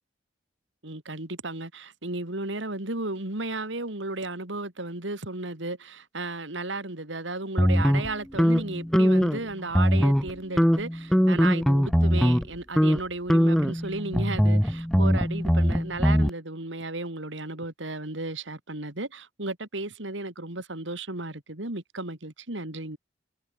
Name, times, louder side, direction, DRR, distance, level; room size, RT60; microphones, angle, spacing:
voice 1, 0.8-23.0, right 2 dB, 75° right, 3.2 m, -34 dB
sound 1, 7.6-9.4 9.7-10.3 10.6-12.5 12.8-13.0 13.3-16.3, equal, ahead, 0.6 m, -21 dB
head